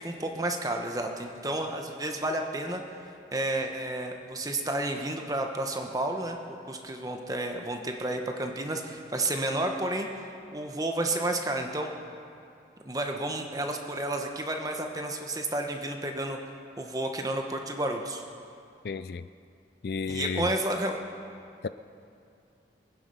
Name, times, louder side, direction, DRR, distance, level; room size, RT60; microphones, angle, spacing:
voice 1, 0.0-2.8 3.3-10.2 10.5-11.9 12.8-16.4 16.8-18.2 20.1-21.0, right 1 dB, 20° right, 3 dB, 1.1 m, -31 dB
voice 2, 18.8-19.3 19.8-20.5 21.6-21.7, left 5 dB, 60° left, 13 dB, 0.4 m, -32 dB
24.5 x 9.8 x 5.5 m, 2.5 s
head